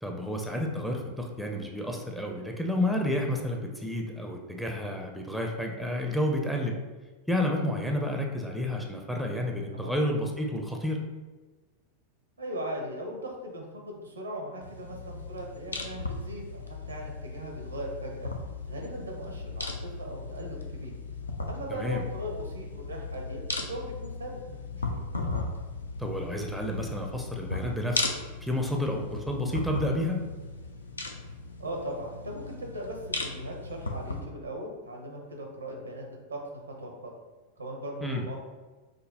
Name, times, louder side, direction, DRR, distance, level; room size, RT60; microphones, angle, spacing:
voice 1, 0.0-6.7 7.3-11.0 21.7-22.0 26.0-28.1 28.4-30.2 38.0-38.3, left 1 dB, ahead, 1 dB, 0.4 m, -30 dB
voice 2, 12.4-18.3 18.7-20.9 21.5-25.0 31.6-36.0 36.3-37.1 37.6-38.4, right 1 dB, 80° right, 1 dB, 0.7 m, -39 dB
sound 1, 14.6-34.2, left 3 dB, 75° left, 0.4 m, -37 dB
5.1 x 2.0 x 2.7 m, 1.3 s
figure-of-eight pair, 90°, 0 cm